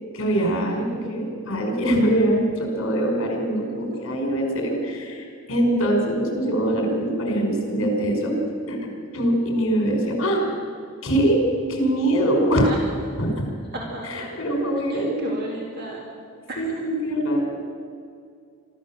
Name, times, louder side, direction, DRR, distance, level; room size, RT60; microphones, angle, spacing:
voice 1, 0.1-8.4 8.7-10.4 11.0-11.4 11.7-12.7 13.2-13.4 14.1-15.3 16.6-17.5, right 1 dB, 60° left, 2 dB, 5.3 m, -23 dB
voice 2, 13.7-14.3 14.9-16.0 16.5-16.8, right 2 dB, 45° right, -2 dB, 2.9 m, -34 dB
25.0 x 14.0 x 7.5 m, 2.2 s
head